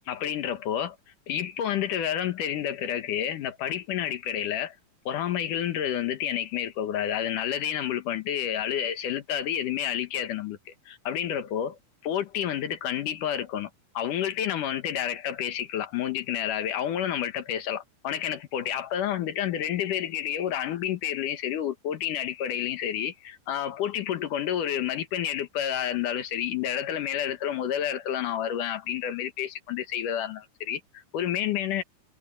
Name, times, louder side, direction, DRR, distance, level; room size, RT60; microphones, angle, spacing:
voice 1, 0.1-1.0 1.3-4.7 5.1-11.8 12.0-13.7 13.9-31.8, left 10 dB, 75° left, 2.9 m, -29 dB
omnidirectional pair, 3.7 m